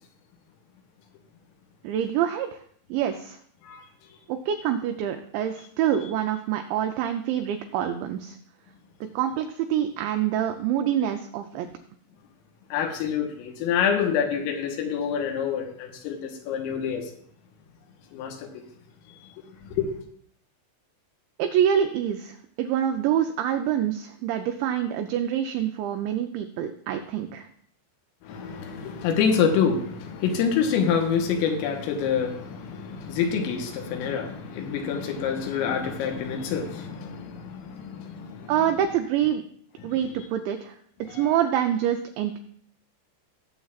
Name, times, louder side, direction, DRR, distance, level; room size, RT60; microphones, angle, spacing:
voice 1, 1.8-2.6 2.9-3.4 4.3-8.4 9.1-11.7 21.4-27.5 38.5-39.4 39.8-40.8 41.1-42.4, right 10 dB, 85° right, 2.5 m, -26 dB
voice 2, 12.7-17.1 18.1-18.5 19.1-19.2 19.6-20.0 28.2-38.5 39.8-39.9 41.1-41.3, left 7 dB, 85° left, 3.7 m, -27 dB
18.0 x 7.5 x 2.4 m
omnidirectional pair, 5.9 m